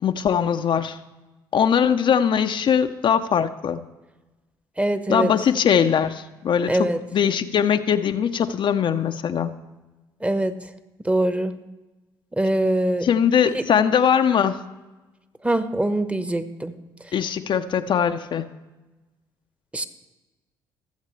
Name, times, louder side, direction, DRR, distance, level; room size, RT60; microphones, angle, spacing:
voice 1, 0.0-1.0 1.5-3.8 5.1-9.5 13.0-14.6 17.1-18.4, left 8 dB, 50° left, 8 dB, 0.6 m, -21 dB
voice 2, 4.8-5.3 6.7-7.0 10.2-10.6 11.0-11.5 12.4-13.1 13.5-13.6 15.4-16.7 19.7-19.9, right 1 dB, 10° right, 11 dB, 1.1 m, -23 dB
22.0 x 7.4 x 3.2 m, 1.1 s
hypercardioid pair, 55°, 10 cm